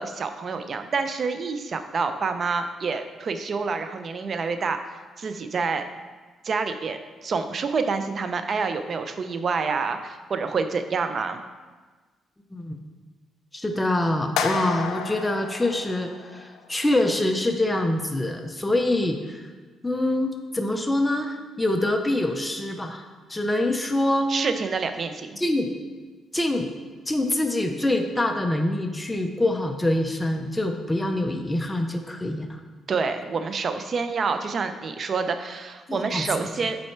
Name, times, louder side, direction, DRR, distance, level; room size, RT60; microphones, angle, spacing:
voice 1, 0.0-4.8 5.2-5.8 6.4-11.4 24.3-25.4 32.9-36.8, right 4 dB, 45° right, 8 dB, 0.5 m, -27 dB
voice 2, 13.5-19.4 19.8-23.0 23.3-24.3 25.4-25.7 26.3-26.7 27.1-32.6 35.9-36.2, left 1 dB, 10° left, 4 dB, 0.5 m, -25 dB
sound 1, 14.4-16.6, left 7 dB, 90° left, 0.5 m, -31 dB
6.5 x 4.1 x 4.4 m, 1.4 s
cardioid pair, 90°, 0 cm